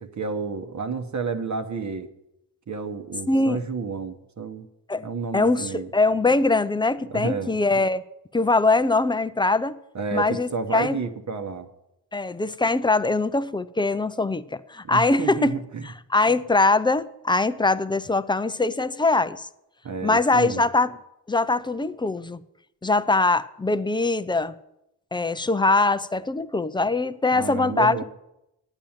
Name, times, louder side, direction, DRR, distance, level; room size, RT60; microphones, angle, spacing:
voice 1, 0.0-2.1 2.7-4.7 5.0-5.9 7.0-7.6 9.9-11.7 14.8-15.9 19.8-20.6 27.3-28.0, right 5 dB, 40° right, 6 dB, 1.0 m, -30 dB
voice 2, 3.3-3.6 4.9-5.1 5.3-8.0 8.3-9.8 10.1-11.0 12.1-15.6 16.1-19.5 20.0-21.0 21.3-22.4 22.8-24.5 25.1-28.0, left 3 dB, 10° left, 14 dB, 0.4 m, -22 dB
9.0 x 8.9 x 7.2 m, 0.86 s
cardioid pair, 80°, 44 cm